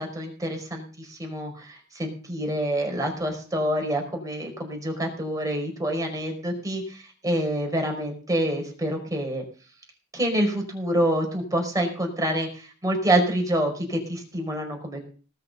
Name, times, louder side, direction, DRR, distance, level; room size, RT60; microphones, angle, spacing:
voice 1, 0.0-9.4 10.1-15.1, right 1 dB, 15° right, 2 dB, 5.0 m, -27 dB
18.5 x 6.8 x 6.8 m, 0.39 s
head